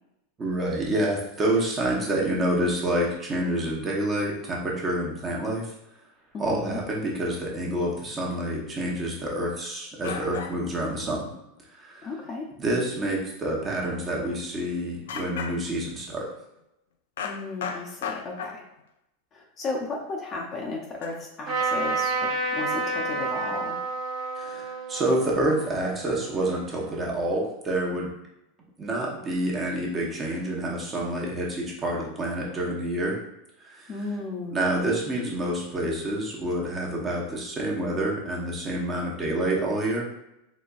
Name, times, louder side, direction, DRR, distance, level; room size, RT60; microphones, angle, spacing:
voice 1, 0.4-5.7 6.4-11.3 11.8-12.1 12.6-16.3 24.4-28.1 28.8-33.1 33.6-33.9 34.5-40.1, right 1 dB, 25° right, -2 dB, 0.9 m, -28 dB
voice 2, 6.3-6.8 12.0-12.5 17.2-18.6 19.3-23.8 33.9-34.6, left 3 dB, 30° left, 0 dB, 0.6 m, -34 dB
sound 1, 8.1-8.2 9.5-9.6 10.0-10.8 11.2-11.3 11.6-11.7 12.0-12.3 12.9-13.2 13.5-13.6 14.1-14.2 14.4-14.5 15.1-15.9 17.2-18.8 19.7-19.8 21.0-21.2, left 7 dB, 90° left, 0.3 m, -36 dB
Trumpet, 21.5-27.0, right 3 dB, 45° right, 1.4 m, -30 dB
4.1 x 2.9 x 2.4 m, 0.86 s
supercardioid pair, 135°, 0 cm